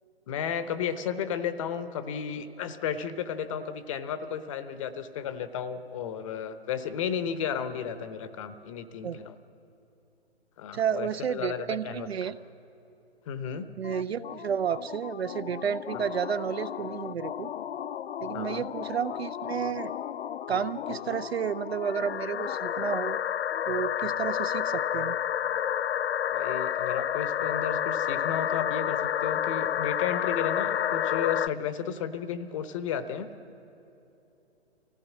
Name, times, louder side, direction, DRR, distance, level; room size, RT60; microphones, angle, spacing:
voice 1, 0.3-9.3 10.6-12.3 13.3-13.7 18.3-18.7 26.3-33.3, left 8 dB, 30° left, 12 dB, 0.8 m, -33 dB
voice 2, 10.7-12.4 13.8-17.5 18.2-19.9 20.5-23.2 23.7-25.2, right 8 dB, 65° right, 14 dB, 0.7 m, -31 dB
sound 1, 13.8-31.5, left 10 dB, 70° left, 0.5 m, -31 dB
24.0 x 15.5 x 7.3 m, 2.9 s
figure-of-eight pair, 135°, 33 cm